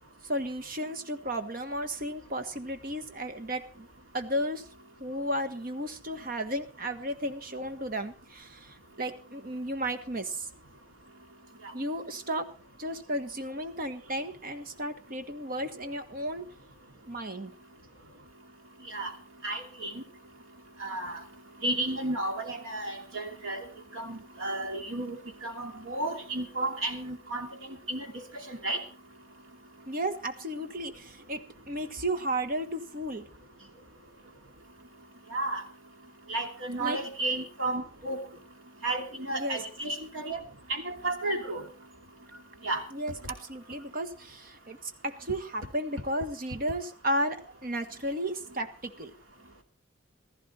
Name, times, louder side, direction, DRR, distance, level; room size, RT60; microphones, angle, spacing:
voice 1, 0.2-3.9 4.1-4.7 5.0-10.5 11.7-12.5 12.8-16.5 17.1-17.5 29.9-33.3 36.8-37.0 39.3-39.6 42.9-49.1, right 1 dB, 45° right, 9 dB, 1.4 m, -34 dB
voice 2, 19.4-20.0 20.8-21.2 21.6-23.6 23.9-27.5 27.9-28.8 35.3-35.6 36.3-38.2 38.8-40.4 40.7-41.6 42.6-42.8, right 2 dB, 75° right, 4 dB, 2.7 m, -33 dB
15.5 x 14.0 x 4.3 m, 0.34 s
head